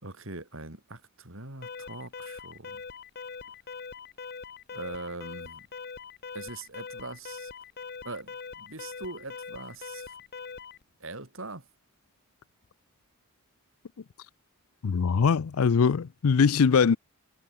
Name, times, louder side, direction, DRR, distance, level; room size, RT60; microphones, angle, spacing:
voice 1, 0.0-2.8 4.7-5.7 6.3-7.5 8.0-10.1 11.0-11.7, right 2 dB, 60° right, 3.6 m, -41 dB
Alarm, 1.6-10.8, left 5 dB, 45° left, 0.8 m, -42 dB
voice 2, 14.8-17.0, left 6 dB, 75° left, 0.5 m, -22 dB
head